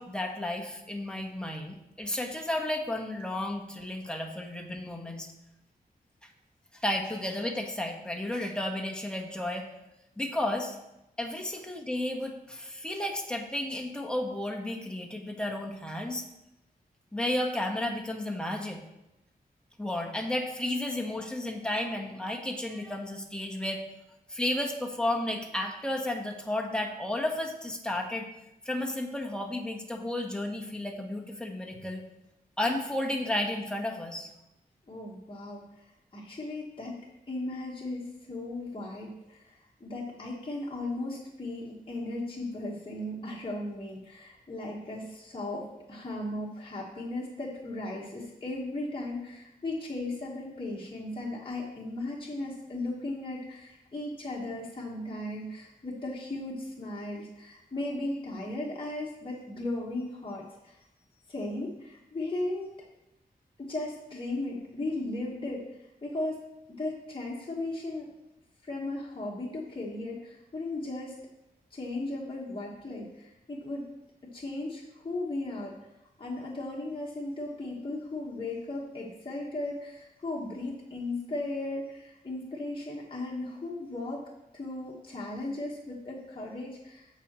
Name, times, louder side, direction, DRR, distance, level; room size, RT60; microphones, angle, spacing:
voice 1, 0.0-5.3 6.7-9.7 10.2-10.8 11.2-16.2 17.1-18.8 19.8-23.8 24.3-28.3 28.6-32.0 32.6-34.3, left 1 dB, 5° left, 1 dB, 1.2 m, -32 dB
voice 2, 34.9-35.8 36.1-37.0 37.3-60.8 61.3-62.7 63.6-65.7 66.0-66.4 66.8-68.1 68.6-71.1 71.7-73.9 74.3-75.7 76.2-84.2 84.5-87.1, left 2 dB, 30° left, -4 dB, 1.4 m, -36 dB
14.5 x 4.9 x 3.0 m, 0.90 s
wide cardioid pair, 100°, 16 cm